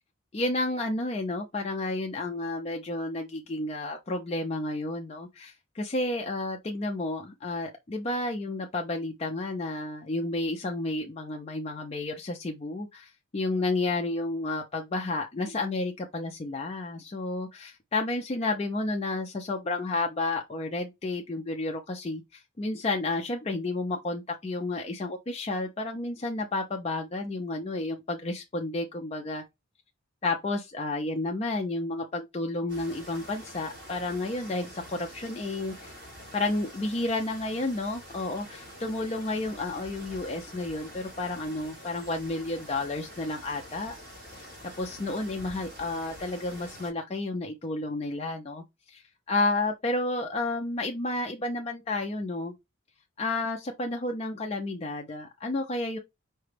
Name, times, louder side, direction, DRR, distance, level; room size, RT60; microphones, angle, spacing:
voice 1, 0.3-29.4 30.2-35.9 36.3-43.9 44.8-52.5 53.2-56.0, left 2 dB, 30° left, 0.4 m, -31 dB
sound 1, 32.7-46.9, equal, 45° right, 2.6 m, -46 dB
4.9 x 2.2 x 3.2 m
head